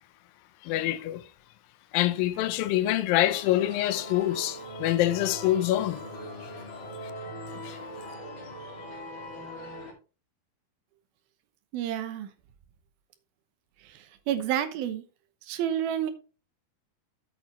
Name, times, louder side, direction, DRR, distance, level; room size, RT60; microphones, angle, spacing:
voice 1, 0.6-1.3 1.9-6.0 6.4-6.5 7.0-7.1 7.5-7.8, left 14 dB, 80° left, 2.3 m, -26 dB
sound 1, 3.2-9.9, equal, 40° left, 2.7 m, -40 dB
voice 2, 11.7-12.3 13.8-15.0 15.4-16.1, right 10 dB, 75° right, 2.7 m, -30 dB
8.6 x 8.3 x 3.0 m
omnidirectional pair, 4.4 m